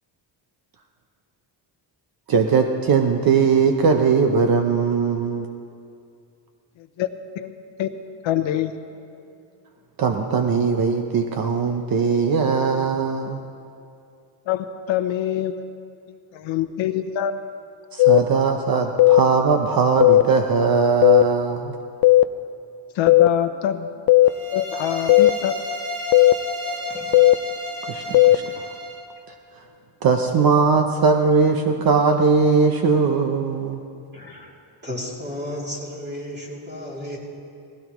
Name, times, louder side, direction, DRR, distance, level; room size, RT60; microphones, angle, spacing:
voice 1, 2.3-5.5 10.0-13.4 17.9-21.8 27.9-28.6 30.0-33.8, right 5 dB, 50° right, 5 dB, 0.8 m, -20 dB
voice 2, 7.4-9.1 14.5-15.8 16.1-17.4 22.9-23.9 24.5-25.6, left 10 dB, 80° left, 9 dB, 0.8 m, -25 dB
sound 1, 18.0-18.2 19.0-19.2 20.0-20.2 21.0-21.2 22.0-22.2 23.1-23.3 24.1-24.3 25.1-25.3 26.1-26.3 27.1-27.3 28.1-28.4, left 16 dB, 55° left, 0.5 m, -13 dB
sound 2, 24.2-29.0, left 1 dB, 70° right, 2.1 m, -32 dB
voice 3, 26.6-27.2 28.0-28.2 34.1-34.5 34.8-37.2, left 1 dB, 20° right, -4 dB, 3.0 m, -34 dB
19.0 x 16.0 x 3.1 m, 2.5 s
cardioid pair, 140°, 45 cm